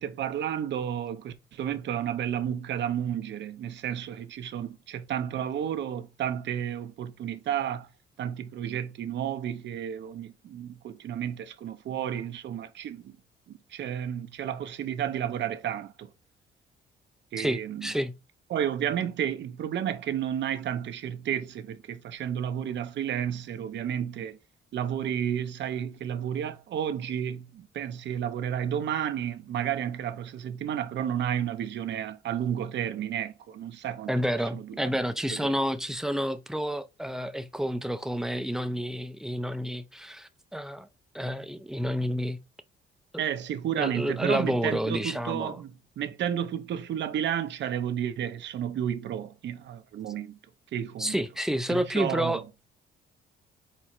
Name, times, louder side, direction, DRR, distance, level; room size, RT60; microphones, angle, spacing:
voice 1, 0.0-7.9 8.2-13.2 13.5-16.1 17.3-17.9 18.5-24.4 24.7-34.1 34.5-34.9 35.3-35.6 43.2-50.4 50.7-51.2 51.7-52.4, right 9 dB, 65° right, 0.6 m, -32 dB
voice 2, 17.4-18.1 34.1-40.9 41.1-42.4 43.8-45.6 51.0-52.4, equal, ahead, 0.5 m, -29 dB
4.4 x 4.2 x 2.5 m
cardioid pair, 90°, 20 cm